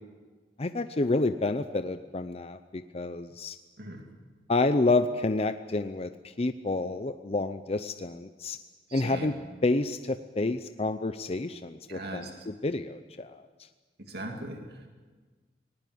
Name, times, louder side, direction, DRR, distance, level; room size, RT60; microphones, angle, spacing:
voice 1, 0.6-3.6 4.5-8.6 8.9-9.3 9.6-13.4, left 2 dB, 35° left, 9 dB, 0.6 m, -29 dB
voice 2, 8.9-9.3 11.9-12.5 14.1-14.9, right 1 dB, 60° right, 3 dB, 2.4 m, -39 dB
19.5 x 18.5 x 9.3 m, 1.4 s
head